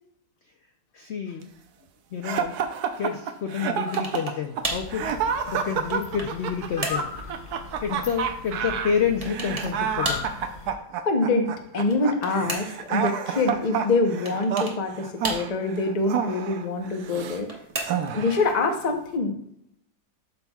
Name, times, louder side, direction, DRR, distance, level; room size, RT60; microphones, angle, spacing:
voice 1, 0.9-1.5 2.1-2.6 3.0-5.1 5.5-7.1 7.8-10.3, left 7 dB, 85° left, 6 dB, 0.6 m, -29 dB
sound 1, 2.2-17.4 17.8-18.5, right 7 dB, 70° right, 1.2 m, -29 dB
sound 2, 3.9-4.4 4.6-4.9 5.6-6.4 6.8-7.1 9.2-9.7 10.0-10.3 11.7-12.9 14.2-14.8 15.2-15.8 17.2-18.2, right 2 dB, 25° right, 1.1 m, -33 dB
sound 3, 4.6-10.7, left 6 dB, 65° left, 1.4 m, -38 dB
voice 2, 11.1-17.6 18.1-19.4, left 3 dB, 40° left, 4 dB, 0.6 m, -25 dB
12.0 x 5.8 x 2.3 m, 0.75 s
omnidirectional pair, 1.8 m